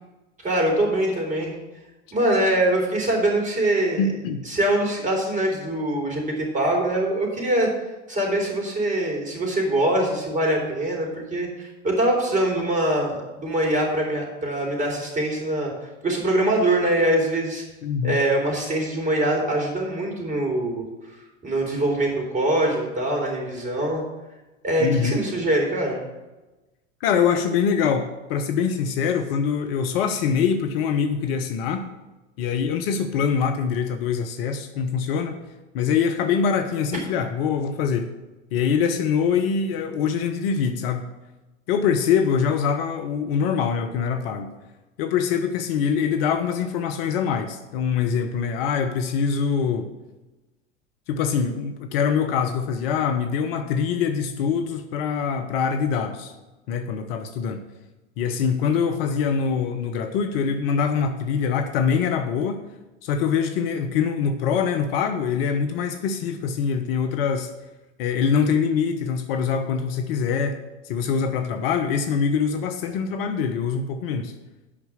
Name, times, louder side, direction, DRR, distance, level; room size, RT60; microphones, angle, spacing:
voice 1, 0.4-1.5 2.1-4.0 4.4-7.7 8.1-15.7 16.0-17.6 18.0-20.8 21.4-24.0 24.6-26.0, right 1 dB, 20° right, -1 dB, 3.9 m, -23 dB
voice 2, 4.0-4.4 17.8-18.2 24.8-25.2 27.0-31.9 32.4-35.4 35.7-38.1 38.5-41.1 41.7-44.5 45.0-49.9 51.1-56.3 56.7-57.6 58.2-62.6 63.0-67.5 68.0-70.6 70.8-74.3, left 6 dB, 55° left, 7 dB, 1.0 m, -24 dB
8.7 x 6.0 x 7.3 m, 1.1 s
figure-of-eight pair, 85°, 35 cm